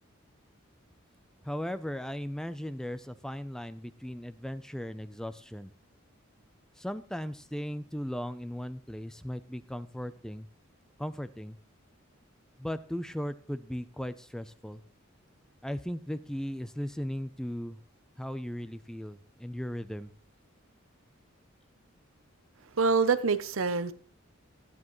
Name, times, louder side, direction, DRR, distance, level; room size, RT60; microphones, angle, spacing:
voice 1, 1.4-5.7 6.8-10.5 11.0-11.6 12.6-14.8 15.6-17.8 18.2-20.1, equal, 5° left, 13 dB, 0.5 m, -37 dB
voice 2, 22.8-23.9, right 4 dB, 80° right, 13 dB, 0.8 m, -25 dB
14.5 x 9.8 x 3.1 m, 0.41 s
head